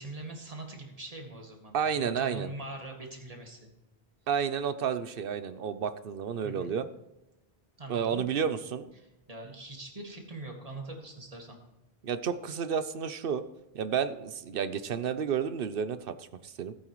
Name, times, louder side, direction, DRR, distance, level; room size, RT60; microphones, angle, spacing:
voice 1, 0.0-3.7 6.4-6.8 7.8-8.2 9.0-11.6, right 2 dB, 35° right, 1 dB, 2.1 m, -43 dB
voice 2, 1.7-2.5 4.3-6.9 7.9-8.9 12.0-13.4 13.7-16.7, right 7 dB, 65° right, 12 dB, 0.9 m, -31 dB
16.0 x 8.8 x 3.1 m, 0.96 s
omnidirectional pair, 1.0 m